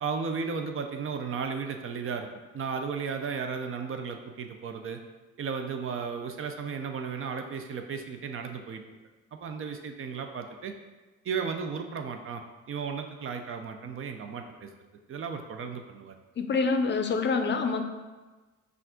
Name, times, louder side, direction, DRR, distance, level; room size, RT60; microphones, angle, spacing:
voice 1, 0.0-2.3 2.5-5.0 5.4-8.8 9.3-10.7 11.2-12.4 12.7-14.7 15.1-16.1, right 5 dB, 45° right, 6 dB, 0.5 m, -34 dB
voice 2, 16.4-17.8, left 4 dB, 40° left, 7 dB, 0.5 m, -26 dB
5.7 x 2.5 x 3.6 m, 1.2 s
cardioid pair, 90°, 30 cm